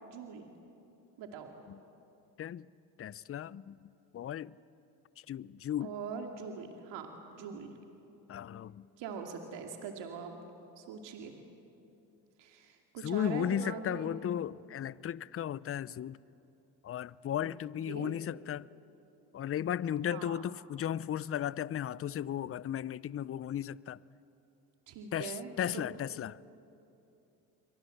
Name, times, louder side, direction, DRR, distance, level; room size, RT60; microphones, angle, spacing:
voice 1, 0.0-0.5 1.2-1.5 5.8-7.7 9.0-10.4 10.8-11.3 12.4-14.1 17.4-17.5 17.9-18.1 20.1-20.5 24.9-25.8, right 6 dB, 70° right, 2.6 m, -42 dB
voice 2, 3.0-4.6 5.3-5.9 8.3-8.9 13.0-16.2 16.8-18.7 19.3-24.0 25.1-26.4, left 10 dB, 30° left, 0.6 m, -35 dB
29.5 x 23.5 x 8.0 m
hypercardioid pair, 70°, 45 cm